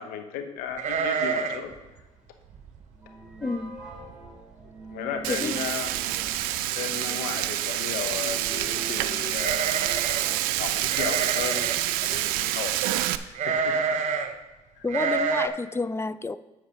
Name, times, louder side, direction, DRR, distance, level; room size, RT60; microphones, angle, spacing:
voice 1, 0.0-1.7 4.9-5.9 6.7-9.7 10.6-11.7 12.1-12.9 13.4-14.0 14.8-14.9, left 7 dB, 80° left, 7 dB, 0.9 m, -34 dB
sound 1, 0.8-1.7 2.0-2.1 2.5-2.8 3.4-3.5 3.8-4.3 4.6-4.7 5.8-5.9 6.2-6.7 9.3-10.3 10.9-11.9 13.3-14.3 14.9-15.5, right 5 dB, 55° right, 0.8 m, -28 dB
sound 2, 1.3-10.4, right 2 dB, 5° right, 3.2 m, -45 dB
voice 2, 3.4-3.8 5.3-5.6 14.8-16.4, left 3 dB, 15° left, 15 dB, 0.4 m, -29 dB
Frying (food), 5.2-13.2, right 14 dB, 85° right, 0.4 m, -27 dB
7.8 x 4.9 x 6.9 m, 1.1 s
supercardioid pair, 65°, 14 cm